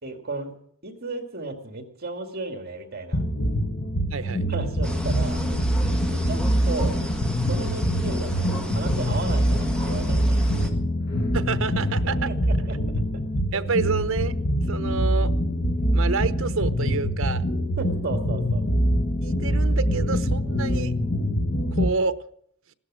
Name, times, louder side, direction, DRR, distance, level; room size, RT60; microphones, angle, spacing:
voice 1, 0.0-0.6 0.8-3.2 4.5-5.4 6.1-7.0 7.5-10.8 12.0-12.8 17.8-18.6, right 3 dB, 50° right, 5 dB, 2.3 m, -34 dB
sound 1, 3.1-21.9, equal, 45° left, 1.3 m, -24 dB
voice 2, 4.1-4.4 11.3-12.3 13.5-14.4 14.7-15.3 15.9-17.4 19.2-20.9 21.7-22.2, right 4 dB, 70° right, 11 dB, 0.9 m, -28 dB
sound 2, 4.8-10.7, equal, 5° left, 1.5 m, -34 dB
sound 3, 6.8-7.2 7.5-7.9 8.2-8.6 8.9-9.3 9.6-10.0 10.3-10.7 11.0-11.4 11.7-12.1, left 2 dB, 70° left, 1.9 m, -43 dB
16.5 x 13.0 x 6.3 m, 0.66 s
head